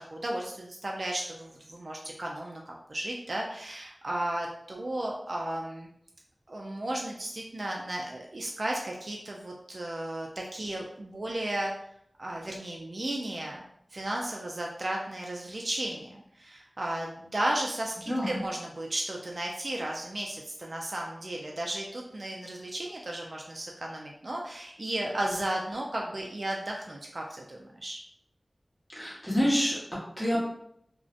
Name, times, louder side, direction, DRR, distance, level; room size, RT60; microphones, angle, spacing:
voice 1, 0.0-5.9 6.5-11.7 12.2-13.6 13.9-28.0, right 1 dB, 60° right, -1 dB, 0.3 m, -34 dB
voice 2, 18.1-18.4 28.9-30.4, equal, 10° left, -7 dB, 1.1 m, -28 dB
2.4 x 2.1 x 2.5 m, 0.72 s
wide cardioid pair, 45°, 0 cm